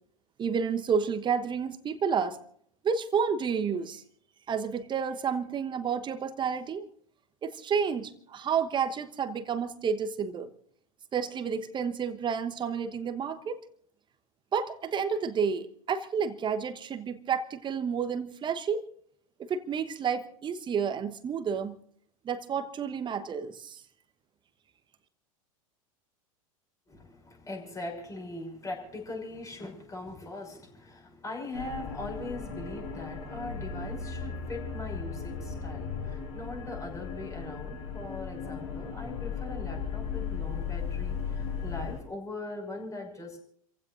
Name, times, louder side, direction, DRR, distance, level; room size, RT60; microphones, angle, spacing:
voice 1, 0.4-2.4 2.8-4.0 4.5-6.9 7.4-10.5 11.1-13.6 14.5-18.9 19.4-21.8 22.2-23.8, right 6 dB, 25° right, 1.2 m, -30 dB
voice 2, 26.9-43.4, left 2 dB, 20° left, 5.9 m, -41 dB
sound 1, 31.5-42.0, left 6 dB, 60° left, 5.0 m, -36 dB
29.5 x 16.0 x 2.6 m
figure-of-eight pair, 85°, 18 cm